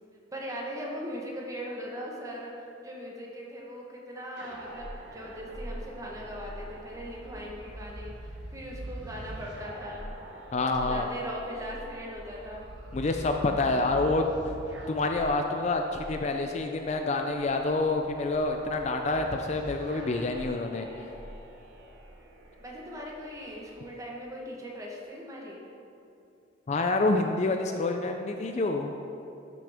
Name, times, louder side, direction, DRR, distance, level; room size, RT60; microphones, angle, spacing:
voice 1, 0.3-2.5 2.8-10.1 10.8-12.7 22.6-25.6, equal, 15° right, -2 dB, 1.1 m, -39 dB
sound 1, 4.4-23.8, right 1 dB, 65° right, 1.0 m, -44 dB
voice 2, 10.5-11.1 12.9-14.2 14.9-20.9 26.7-28.9, left 2 dB, 35° left, 4 dB, 0.4 m, -27 dB
11.5 x 6.1 x 3.5 m, 2.7 s
head